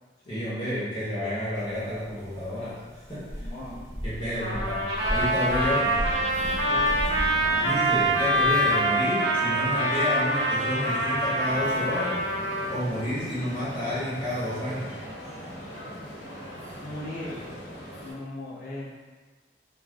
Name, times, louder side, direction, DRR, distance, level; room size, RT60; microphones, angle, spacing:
voice 1, 0.3-2.8 3.1-3.5 4.0-6.0 7.6-12.2 12.7-15.0, left 1 dB, 25° left, -11 dB, 1.1 m, -30 dB
sound 1, 1.5-8.5, equal, 15° right, 0.5 m, -36 dB
voice 2, 3.4-3.8 6.7-7.0 16.8-17.5 18.0-18.9, left 1 dB, 50° left, -6 dB, 0.6 m, -38 dB
Trumpet, 4.4-12.7, right 1 dB, 85° right, 0.7 m, -25 dB
sound 2, 4.9-18.1, equal, 80° left, 1.1 m, -40 dB
2.5 x 2.3 x 3.2 m, 1.3 s
head